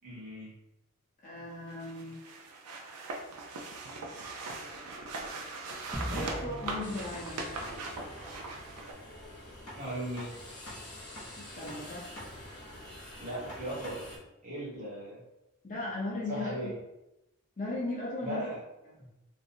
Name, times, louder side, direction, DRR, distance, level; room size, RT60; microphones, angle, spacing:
voice 1, 0.0-0.5 9.7-10.3 13.2-14.0 14.4-15.2 16.3-16.7 18.2-18.6, right 1 dB, 35° right, -7 dB, 1.0 m, -37 dB
voice 2, 1.2-2.1 6.1-7.5 11.4-12.1 15.6-16.7 17.6-18.5 18.8-19.1, left 2 dB, 35° left, -5 dB, 0.6 m, -37 dB
sound 1, 1.7-8.9, right 3 dB, 85° right, 0.4 m, -40 dB
sound 2, 5.9-8.4, equal, 15° right, 0.3 m, -40 dB
sound 3, 6.8-14.2, left 1 dB, 75° left, 0.8 m, -46 dB
2.6 x 2.0 x 2.6 m, 0.92 s
head